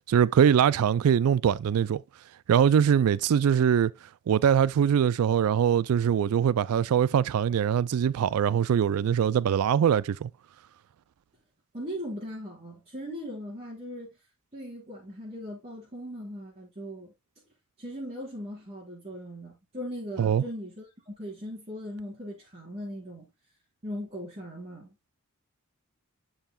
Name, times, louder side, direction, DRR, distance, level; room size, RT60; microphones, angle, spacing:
voice 1, 0.1-2.0 2.5-3.9 4.3-10.3 20.2-20.4, right 8 dB, 80° right, 0.3 m, -22 dB
voice 2, 11.7-14.1 14.5-17.1 17.8-23.3 23.8-25.0, equal, 30° right, 3.7 m, -39 dB
11.0 x 5.7 x 2.3 m
head